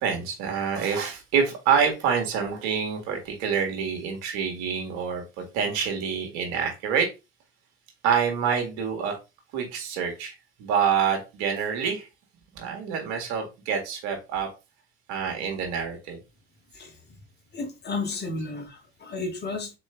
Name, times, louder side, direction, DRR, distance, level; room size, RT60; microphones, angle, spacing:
voice 1, 0.0-7.1 8.0-9.2 9.5-10.3 10.6-12.1 12.5-14.5 15.1-16.2, right 7 dB, 65° right, 1.7 m, -27 dB
voice 2, 17.5-19.7, left 3 dB, 30° left, 1.7 m, -33 dB
4.4 x 3.1 x 3.3 m
hypercardioid pair, 80°, 32 cm